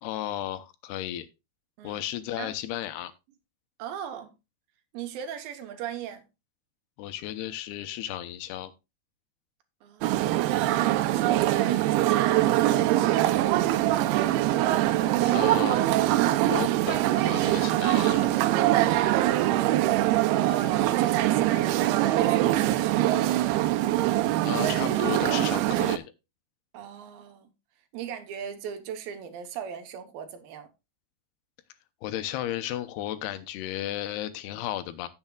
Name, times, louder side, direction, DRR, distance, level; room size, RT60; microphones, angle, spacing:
voice 1, 0.0-1.3 1.8-3.1 7.0-8.7 15.2-15.8 16.4-18.3 24.4-26.1 32.0-35.1, left 13 dB, 85° left, 2.9 m, -34 dB
voice 2, 3.8-4.3 4.9-6.2 9.8-10.6 11.0-14.2 20.4-23.7 26.7-27.5 27.9-30.7, right 8 dB, 70° right, 2.7 m, -38 dB
sound 1, 10.0-26.0, right 15 dB, 90° right, 2.7 m, -23 dB
16.0 x 7.0 x 2.3 m
omnidirectional pair, 4.5 m